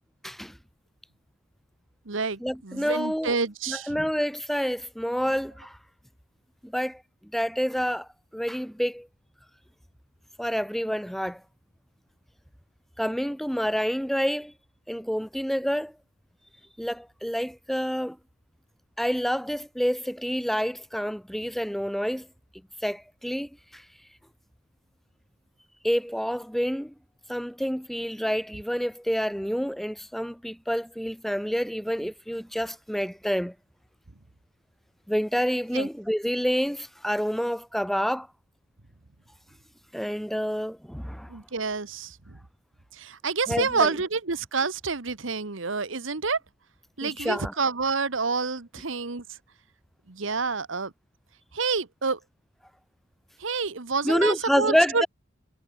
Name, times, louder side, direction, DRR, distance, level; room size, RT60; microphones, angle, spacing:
voice 1, 0.2-0.6 2.4-3.3 3.7-5.8 6.6-7.0 7.3-9.1 10.4-11.4 13.0-14.5 14.9-15.9 16.8-18.2 19.0-22.3 22.8-23.8 25.8-26.9 27.3-33.5 35.1-38.3 39.9-41.4 43.5-43.9 47.0-47.5 54.0-55.1, equal, ahead, 3.4 m, -28 dB
voice 2, 2.1-4.0 35.7-35.9 41.3-42.2 42.9-46.4 47.0-49.2 50.1-50.9 51.5-52.2 53.4-55.0, right 4 dB, 70° right, 1.4 m, -28 dB
head